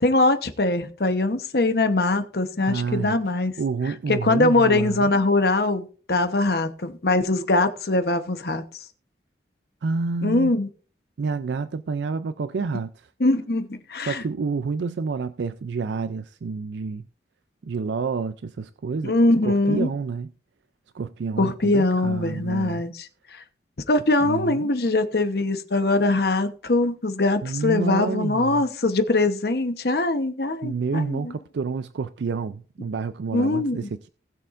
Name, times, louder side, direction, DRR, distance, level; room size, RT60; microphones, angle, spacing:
voice 1, 0.0-3.5 4.1-8.6 10.2-10.7 13.2-14.2 19.0-19.9 21.4-23.4 23.9-31.3 33.3-33.9, left 2 dB, 60° left, 1.0 m, -22 dB
voice 2, 2.6-3.2 3.6-5.1 9.8-10.5 11.2-12.9 14.0-17.1 17.6-19.2 19.4-20.3 20.9-22.8 24.2-24.8 27.4-28.6 30.6-34.1, right 4 dB, 75° right, 0.4 m, -29 dB
19.0 x 6.7 x 2.5 m
head